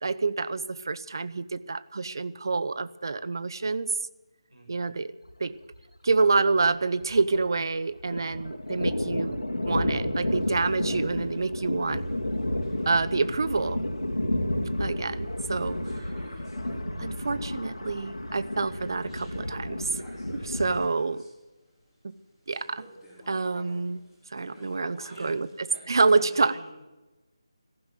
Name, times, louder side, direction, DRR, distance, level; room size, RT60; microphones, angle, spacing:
voice 1, 0.0-3.9 4.7-5.1 5.4-5.5 6.0-12.0 12.9-13.8 14.8-15.8 17.0-20.0 20.3-21.2 22.0-22.1 22.5-22.9 23.3-24.0 24.3-25.5 25.9-26.6, right 4 dB, 50° right, 16 dB, 0.8 m, -27 dB
voice 2, 4.5-4.9 25.1-26.8, right 1 dB, 80° right, 1 dB, 7.6 m, -48 dB
Thunder, 5.3-5.4 5.7-5.8 6.1-7.6 7.9-20.9, left 1 dB, 75° left, 2.9 m, -31 dB
sound 1, 10.4-26.4, left 1 dB, ahead, 4.0 m, -56 dB
15.0 x 12.0 x 7.8 m, 1.1 s
figure-of-eight pair, 160°, 3 cm